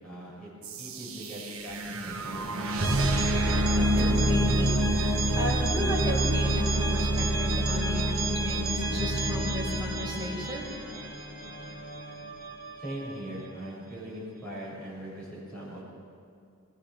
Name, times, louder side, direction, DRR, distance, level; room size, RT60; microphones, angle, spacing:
voice 1, 0.0-0.5 0.8-3.2 12.8-15.8, right 1 dB, 5° left, -8 dB, 7.2 m, -40 dB
sound 1, 0.6-11.5, right 1 dB, 75° right, 1.4 m, -27 dB
voice 2, 3.7-10.7, left 1 dB, 20° right, -6 dB, 4.8 m, -34 dB
Musical instrument, 4.5-13.7, equal, 50° left, 2.6 m, -43 dB
22.0 x 20.0 x 6.3 m, 2.5 s
head